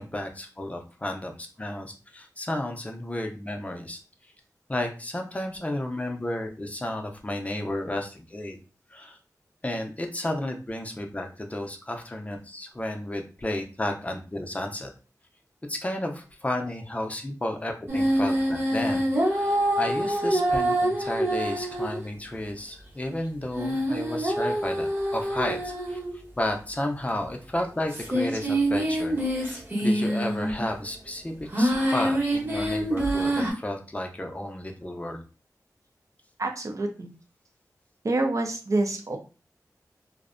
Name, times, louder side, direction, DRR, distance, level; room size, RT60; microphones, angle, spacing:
voice 1, 0.0-4.0 4.7-8.6 8.9-9.2 9.6-14.9 15.7-26.0 26.4-35.2, left 1 dB, 20° left, 3 dB, 0.5 m, -32 dB
sound 1, 17.9-22.0 23.5-26.2 27.1-27.2 27.9-30.7 31.5-33.5, right 1 dB, 35° right, 0.9 m, -26 dB
voice 2, 36.4-37.1 38.0-39.2, right 2 dB, 55° right, 4 dB, 0.5 m, -27 dB
2.5 x 2.1 x 2.5 m, 0.34 s
wide cardioid pair, 80°, 6 cm